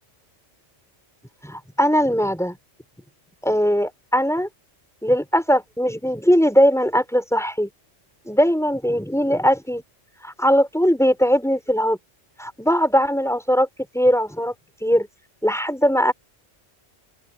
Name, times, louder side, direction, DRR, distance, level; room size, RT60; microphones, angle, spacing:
voice 1, 1.4-2.6 3.4-4.5 5.0-7.7 8.2-9.8 10.2-12.0 12.4-13.7 13.9-14.5 14.8-15.1 15.4-16.1, equal, ahead, 5.0 m, -20 dB
open air
omnidirectional pair, 1.3 m